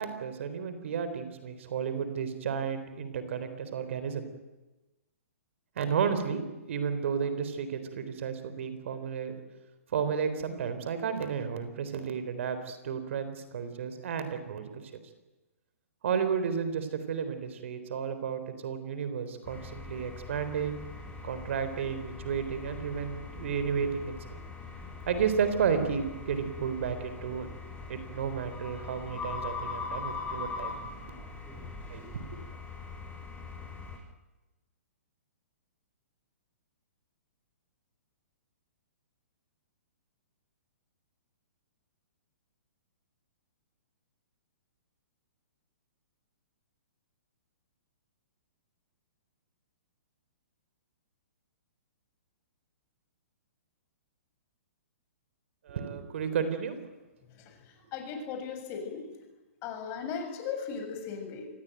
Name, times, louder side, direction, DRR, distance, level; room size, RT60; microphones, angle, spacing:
voice 1, 0.0-4.3 5.8-6.4 6.7-9.3 9.9-14.8 16.0-20.8 21.2-24.1 25.1-27.5 27.9-30.7 31.9-32.0 55.7-56.8, right 7 dB, 60° right, 11 dB, 3.9 m, -32 dB
sound 1, 19.5-34.0, left 4 dB, 15° left, 7.5 m, -41 dB
voice 2, 57.3-59.1 59.6-61.5, left 6 dB, 35° left, 5 dB, 7.3 m, -37 dB
27.0 x 20.5 x 9.3 m, 1.1 s
figure-of-eight pair, 125°, 8 cm